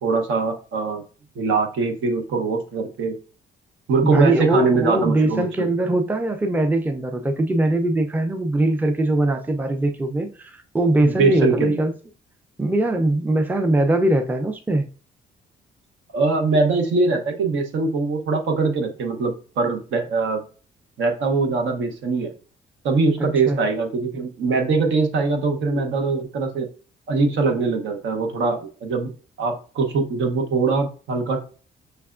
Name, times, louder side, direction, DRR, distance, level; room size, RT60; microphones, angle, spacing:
voice 1, 0.0-1.0 1.4-3.2 3.9-5.7 11.0-11.8 16.1-20.4 21.0-22.3 22.8-26.7 27.1-29.1 29.4-31.4, right 4 dB, 75° right, 0.9 m, -22 dB
voice 2, 4.1-11.9 12.6-14.9 23.5-23.6, right 1 dB, 10° right, 0.5 m, -21 dB
5.4 x 3.3 x 2.4 m
cardioid pair, 90°, 20 cm